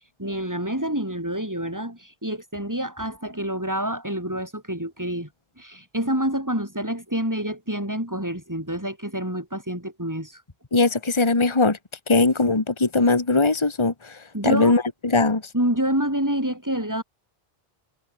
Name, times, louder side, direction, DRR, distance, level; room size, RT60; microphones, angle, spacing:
voice 1, 0.2-5.3 5.6-10.4 14.3-14.8 15.5-17.0, right 1 dB, 15° right, 4.8 m, -27 dB
voice 2, 10.7-11.8 12.1-15.4, left 3 dB, 30° left, 1.7 m, -20 dB
omnidirectional pair, 1.0 m